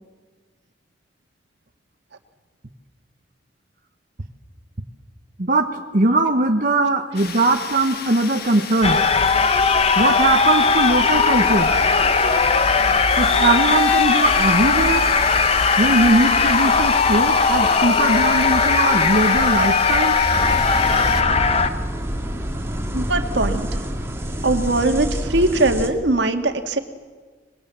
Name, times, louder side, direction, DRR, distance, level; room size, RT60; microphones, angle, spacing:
voice 1, 5.4-9.0 10.0-11.7 13.2-15.0 15.8-20.2, right 2 dB, 50° right, 3 dB, 1.1 m, -20 dB
sound 1, 7.1-21.2, left 6 dB, 60° left, 1.7 m, -33 dB
sound 2, 8.8-21.7, left 4 dB, 35° left, 1.0 m, -18 dB
sound 3, 20.3-25.9, equal, 15° right, 2.2 m, -27 dB
voice 2, 22.9-23.9 24.4-26.8, right 2 dB, 75° right, 6 dB, 1.8 m, -21 dB
24.5 x 22.0 x 7.5 m, 1.5 s
head